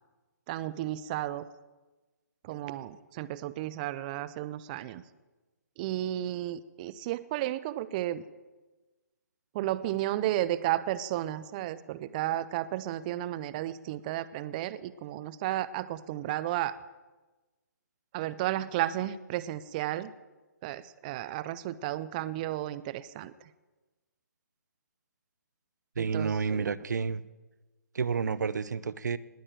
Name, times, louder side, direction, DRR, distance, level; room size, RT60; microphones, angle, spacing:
voice 1, 0.5-1.5 2.4-5.0 5.8-8.2 9.5-16.8 18.1-20.1 20.6-23.3 26.0-26.7, right 14 dB, 30° right, 16 dB, 0.5 m, -33 dB
voice 2, 26.0-27.2 27.9-29.2, right 5 dB, 75° right, 18 dB, 0.7 m, -30 dB
19.5 x 6.6 x 9.0 m, 1.2 s
hypercardioid pair, 145°, 10 cm